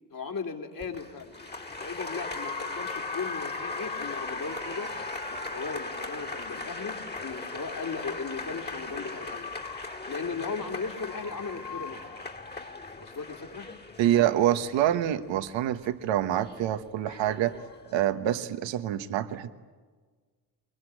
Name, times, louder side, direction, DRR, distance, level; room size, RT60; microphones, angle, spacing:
voice 1, 0.1-1.4 1.8-4.9 5.3-9.4 10.1-12.0 13.0-13.7, left 5 dB, 50° left, 2 dB, 3.8 m, -37 dB
Applause, 0.8-17.9, left 3 dB, 25° left, 2.4 m, -38 dB
voice 2, 14.0-17.5 17.9-19.5, right 12 dB, 85° right, 10 dB, 1.3 m, -26 dB
23.5 x 22.0 x 10.0 m, 1.4 s
supercardioid pair, 65°, 43 cm